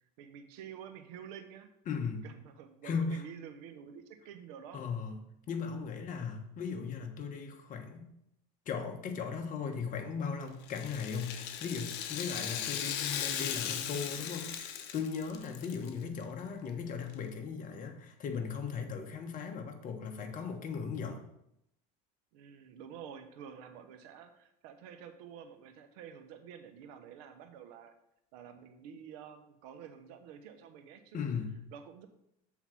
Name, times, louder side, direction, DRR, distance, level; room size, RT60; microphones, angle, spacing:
voice 1, 0.2-1.7 2.2-4.8 22.3-27.9 28.3-31.3 31.7-32.1, right 8 dB, 80° right, 7 dB, 1.0 m, -49 dB
voice 2, 1.9-2.2 2.8-3.2 4.7-8.1 8.7-14.6 14.9-21.2 31.1-31.6, left 5 dB, 40° left, 4 dB, 1.3 m, -37 dB
Rattle (instrument), 10.6-15.9 16.2-16.3 17.1-17.2, left 9 dB, 65° left, 0.9 m, -38 dB
7.1 x 3.9 x 6.1 m, 0.80 s
supercardioid pair, 110°, 20 cm